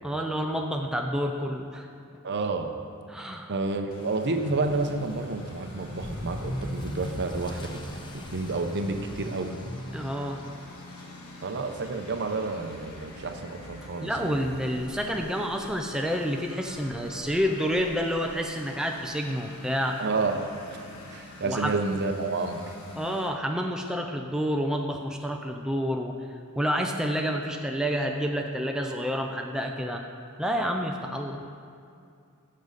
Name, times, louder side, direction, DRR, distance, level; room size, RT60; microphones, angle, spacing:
voice 1, 0.0-1.9 3.1-3.5 9.9-10.4 14.0-20.0 21.4-21.7 23.0-26.1 26.6-30.0 30.4-31.4, equal, 5° right, 2 dB, 0.4 m, -29 dB
voice 2, 2.2-2.7 3.5-9.6 11.4-14.4 20.0-20.4 21.1-22.6, right 3 dB, 55° right, 6 dB, 0.7 m, -30 dB
Engine, 3.9-23.3, left 1 dB, 80° left, 1.4 m, -46 dB
Motor vehicle (road) / Accelerating revving vroom, 4.7-19.5 19.8-20.2 20.7-20.8 21.1-21.2 21.5-21.6 22.9-23.0, left 1 dB, 20° left, 0.7 m, -42 dB
13.5 x 6.5 x 4.1 m, 2.5 s
head